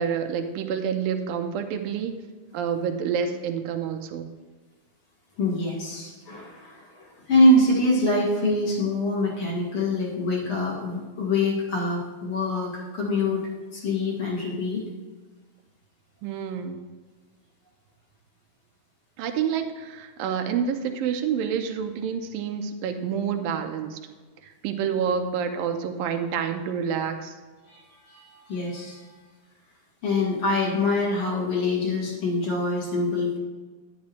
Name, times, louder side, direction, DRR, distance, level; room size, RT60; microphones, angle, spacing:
voice 1, 0.0-2.1 2.5-4.3 16.2-16.9 19.2-24.0 24.4-27.3, right 7 dB, 90° right, 6 dB, 2.5 m, -28 dB
voice 2, 5.4-13.4 13.7-14.8 27.7-29.2 30.0-33.4, left 1 dB, 45° left, -4 dB, 2.6 m, -24 dB
10.5 x 10.5 x 3.1 m, 1.4 s
omnidirectional pair, 4.1 m